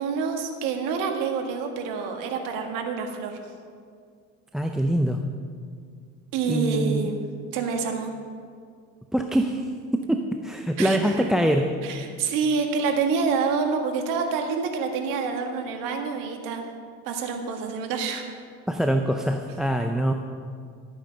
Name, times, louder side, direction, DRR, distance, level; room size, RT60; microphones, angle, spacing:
voice 1, 0.0-3.4 6.3-7.2 7.5-8.1 10.8-11.2 11.8-16.6 17.1-18.2, right 5 dB, 70° right, 4 dB, 1.7 m, -27 dB
voice 2, 4.5-5.2 6.5-7.1 9.1-9.7 9.9-11.7 18.7-20.1, right 1 dB, ahead, 5 dB, 0.5 m, -24 dB
13.0 x 9.0 x 5.2 m, 2.1 s
supercardioid pair, 110°, 34 cm